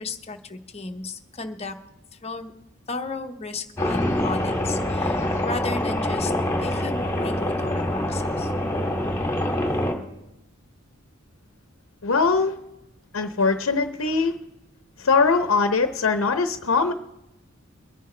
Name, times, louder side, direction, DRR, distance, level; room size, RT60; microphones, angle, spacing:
voice 1, 0.0-1.8 2.2-2.5 2.9-6.3 6.6-8.5, left 3 dB, 30° left, 5 dB, 0.9 m, -34 dB
sound 1, 3.8-9.9, left 1 dB, 15° left, 2.2 m, -25 dB
voice 2, 12.0-12.6 13.1-14.3 15.0-16.9, left 4 dB, 85° left, 8 dB, 0.8 m, -21 dB
23.5 x 10.0 x 3.2 m, 0.92 s
head